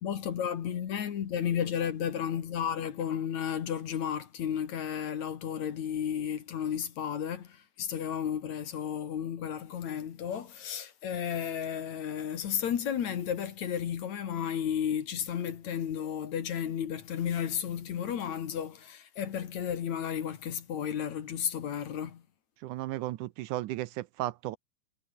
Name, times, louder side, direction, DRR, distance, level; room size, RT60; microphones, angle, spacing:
voice 1, 0.0-22.2, left 9 dB, 60° left, 2.9 m, -33 dB
voice 2, 22.6-24.6, right 16 dB, 75° right, 2.1 m, -34 dB
omnidirectional pair, 3.9 m